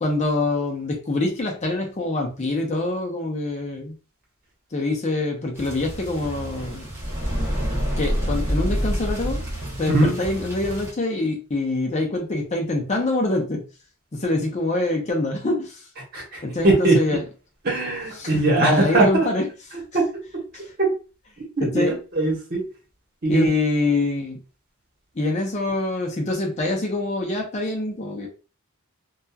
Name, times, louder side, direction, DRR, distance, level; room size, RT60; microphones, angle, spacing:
voice 1, 0.0-3.9 4.7-6.9 8.0-9.4 9.8-13.6 14.2-15.7 16.4-17.2 18.2-19.5 20.5-20.6 21.6-22.0 23.3-24.4 25.2-28.3, left 2 dB, 30° left, 1 dB, 0.5 m, -25 dB
sound 1, 5.5-10.9, equal, 15° right, 0.9 m, -27 dB
voice 2, 16.1-17.0 17.6-19.3 19.9-20.0 20.8-20.9 21.6-21.8 22.1-22.6 23.2-23.5, right 2 dB, 45° right, -2 dB, 1.0 m, -20 dB
2.8 x 2.3 x 2.3 m, 0.34 s
head